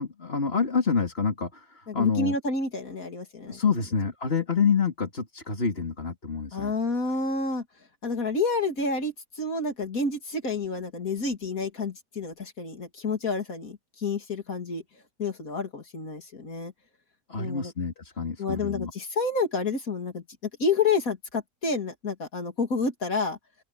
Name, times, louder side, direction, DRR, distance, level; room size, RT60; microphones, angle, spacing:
voice 1, 0.0-2.3 3.5-6.7 17.3-18.9, left 5 dB, 45° left, 3.3 m, -27 dB
voice 2, 1.9-3.6 6.5-7.6 8.0-14.8 15.2-16.7 17.4-17.7 18.4-20.2 20.6-23.4, left 3 dB, 90° left, 3.3 m, -29 dB
open air
omnidirectional pair, 1.4 m